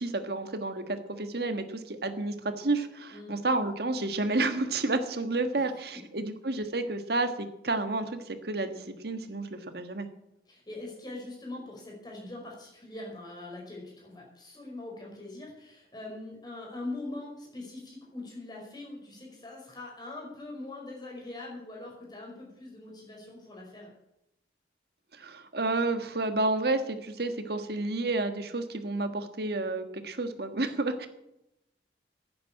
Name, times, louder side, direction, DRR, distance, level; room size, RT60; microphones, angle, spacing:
voice 1, 0.0-10.1 25.1-31.1, right 2 dB, 60° right, 8 dB, 1.5 m, -30 dB
voice 2, 10.4-23.9, left 2 dB, 25° left, -2 dB, 5.1 m, -42 dB
10.5 x 9.5 x 8.7 m, 0.86 s
head